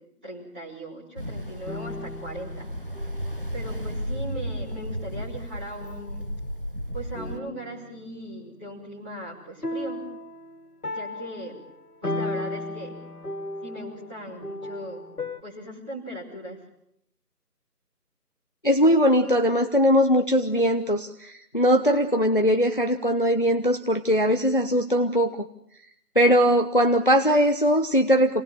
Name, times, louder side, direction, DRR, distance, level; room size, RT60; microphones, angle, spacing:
voice 1, 0.2-2.7 3.5-6.3 6.9-10.0 10.9-11.6 12.0-12.9 13.6-15.0 15.4-16.6, right 1 dB, 5° right, -10 dB, 3.0 m, -39 dB
Ocean, 1.2-7.4, equal, 35° right, 0.9 m, -34 dB
sound 1, 1.7-3.5 4.4-4.7 5.8-6.6 7.1-8.4 9.6-15.4, left 2 dB, 70° left, 2.3 m, -36 dB
voice 2, 18.6-25.4 26.2-28.4, equal, 35° left, 6 dB, 0.9 m, -20 dB
28.5 x 19.0 x 7.5 m, 0.73 s
figure-of-eight pair, 165°, 48 cm